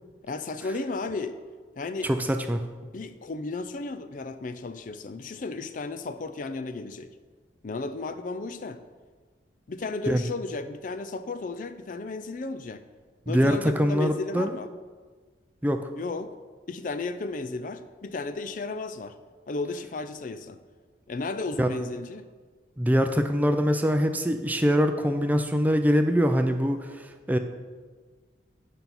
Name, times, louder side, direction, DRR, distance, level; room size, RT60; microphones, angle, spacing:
voice 1, 0.2-1.4 1.8-2.1 2.8-7.1 7.6-8.8 9.7-12.8 13.3-14.7 16.0-16.3 16.7-19.1 19.5-20.6 21.1-22.3, left 3 dB, 45° left, 10 dB, 0.4 m, -34 dB
voice 2, 2.0-2.6 10.1-10.2 13.3-14.5 15.6-15.9 21.6-21.7 22.8-27.4, equal, 10° right, 7 dB, 0.4 m, -23 dB
9.1 x 5.4 x 6.0 m, 1.5 s
head